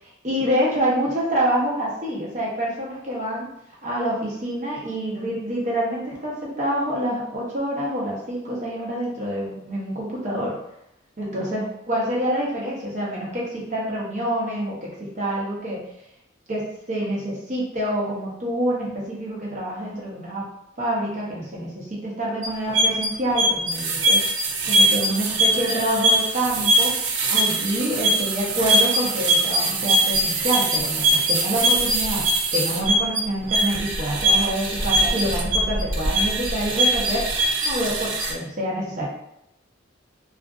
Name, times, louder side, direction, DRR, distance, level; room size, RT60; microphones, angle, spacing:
voice 1, 0.2-3.5 3.8-10.6 11.2-15.8 16.5-20.5 20.8-24.2 24.6-26.9 27.3-37.2 37.6-39.1, right 1 dB, 40° right, -5 dB, 0.7 m, -27 dB
sound 1, 22.4-38.3, right 1 dB, 65° right, 0.4 m, -22 dB
2.4 x 2.4 x 2.3 m, 0.79 s
head